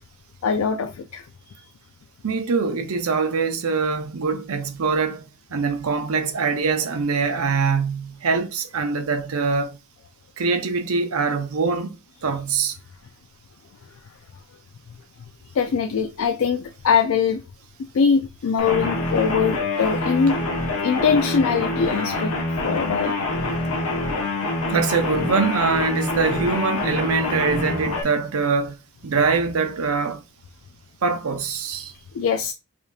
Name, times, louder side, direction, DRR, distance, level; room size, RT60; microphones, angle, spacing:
voice 1, 0.4-1.7 15.5-17.4 17.9-20.5 20.8-22.3 22.6-23.2 31.8-32.5, left 6 dB, 70° left, 0.4 m, -22 dB
voice 2, 2.2-9.8 10.4-12.0 12.2-12.8 24.7-28.8 29.0-30.2 31.0-31.9, right 4 dB, 80° right, 0.6 m, -23 dB
sound 1, 18.6-28.0, left 2 dB, 85° left, 1.0 m, -26 dB
4.9 x 2.7 x 2.3 m
head